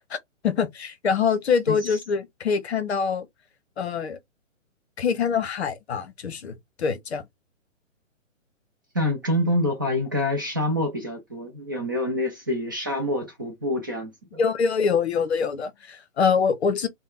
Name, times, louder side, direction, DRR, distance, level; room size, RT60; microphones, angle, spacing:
voice 1, 0.4-3.3 3.8-4.2 5.0-7.2 14.4-16.9, left 6 dB, 55° left, 0.8 m, -24 dB
voice 2, 1.7-2.0 8.9-14.4, left 1 dB, 15° right, 0.4 m, -26 dB
3.4 x 2.2 x 2.4 m
figure-of-eight pair, 130°, 39 cm